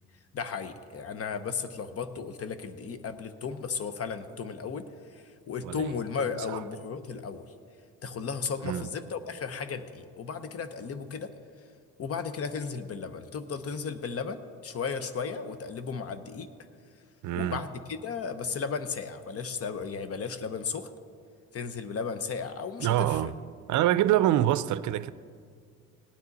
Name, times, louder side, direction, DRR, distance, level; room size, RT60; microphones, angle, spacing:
voice 1, 0.3-7.5 8.0-11.3 12.0-16.5 17.3-20.9 21.5-23.3, left 5 dB, 50° left, 0.9 m, -35 dB
voice 2, 17.2-17.6 22.8-23.3 23.7-25.1, right 13 dB, 75° right, 0.5 m, -25 dB
17.0 x 9.7 x 4.0 m
cardioid pair, 90°, 30 cm